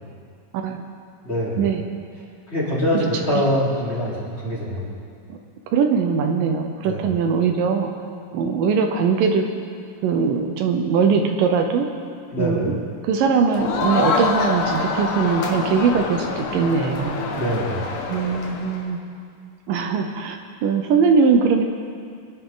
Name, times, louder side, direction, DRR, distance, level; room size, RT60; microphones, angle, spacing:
voice 1, 1.2-1.6 2.5-4.9 6.8-7.0 12.3-12.6 17.3-17.9, equal, 20° left, -8 dB, 3.8 m, -24 dB
voice 2, 5.7-7.9 8.3-9.5 10.0-11.9 12.4-17.2 18.1-19.0 19.7-21.6, right 5 dB, 80° right, 4 dB, 2.6 m, -21 dB
Crowd, 13.5-18.9, left 4 dB, 70° left, 2.9 m, -26 dB
26.5 x 10.5 x 3.9 m, 2.2 s
omnidirectional pair, 4.0 m